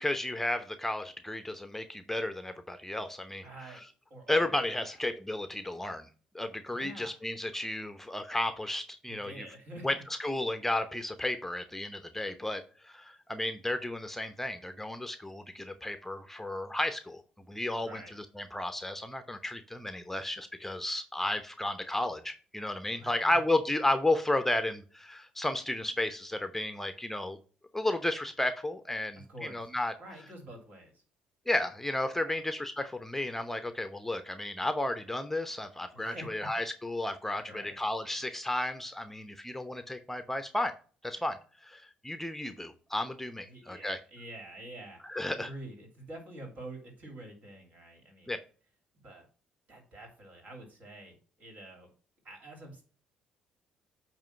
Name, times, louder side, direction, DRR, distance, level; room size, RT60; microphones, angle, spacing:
voice 1, 0.0-3.5 4.3-6.1 6.3-9.4 9.8-17.2 17.5-27.4 27.7-29.3 29.5-29.9 31.5-40.7 41.0-44.0 45.1-45.5 48.3-48.4, left 1 dB, 10° left, 9 dB, 0.8 m, -33 dB
voice 2, 3.4-3.8 4.1-5.0 6.7-7.1 9.0-10.0 17.8-18.1 23.0-23.4 29.2-29.7 30.0-31.0 32.1-32.4 35.9-36.5 37.4-37.8 43.5-45.0 45.3-48.3 49.0-49.3 49.7-51.9 52.2-52.8, right 1 dB, 55° right, 3 dB, 3.0 m, -47 dB
8.8 x 3.1 x 5.6 m, 0.40 s
hypercardioid pair, 50°, 3 cm